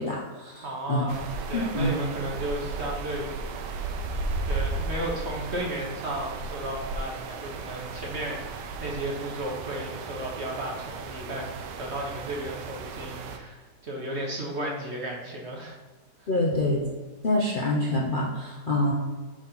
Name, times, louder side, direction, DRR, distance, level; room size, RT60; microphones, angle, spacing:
voice 1, 0.0-1.1 1.5-1.9 16.3-16.9 17.2-18.9, left 1 dB, 45° left, -3 dB, 0.7 m, -26 dB
voice 2, 0.6-3.9 4.4-15.8 16.2-16.3, right 1 dB, 45° right, -1 dB, 1.1 m, -34 dB
sound 1, 1.1-13.4, right 3 dB, 80° right, 1.3 m, -35 dB
4.8 x 4.0 x 5.7 m, 1.3 s
omnidirectional pair, 1.9 m